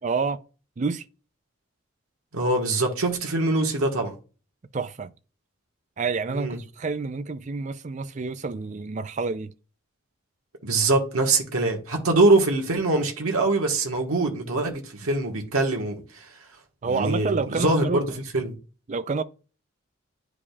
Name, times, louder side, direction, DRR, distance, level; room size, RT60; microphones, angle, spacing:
voice 1, 0.0-0.4 0.8-1.0 4.7-5.1 6.0-9.5 16.8-18.0 18.9-19.2, right 4 dB, 35° right, 0.4 m, -28 dB
voice 2, 2.3-4.1 6.3-6.6 10.6-16.2 16.9-18.1 18.3-18.5, right 2 dB, 85° right, 1.4 m, -23 dB
10.0 x 4.9 x 2.3 m
head